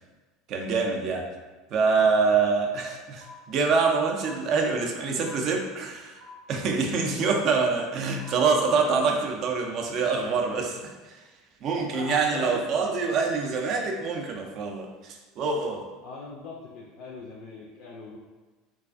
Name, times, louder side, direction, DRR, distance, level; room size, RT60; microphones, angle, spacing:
voice 1, 0.5-1.3 1.7-6.2 6.5-10.9 11.6-15.8, right 4 dB, 50° right, 2 dB, 0.4 m, -25 dB
sound 1, 3.2-3.3 4.2-4.3 5.2-5.3 6.2-6.3 7.2-7.3 8.2-8.7, left 8 dB, 90° right, 0.9 m, -45 dB
voice 2, 11.7-12.8 16.0-18.2, left 3 dB, 55° left, -2 dB, 0.3 m, -39 dB
2.4 x 2.3 x 2.4 m, 1.3 s
figure-of-eight pair, 70°, 0 cm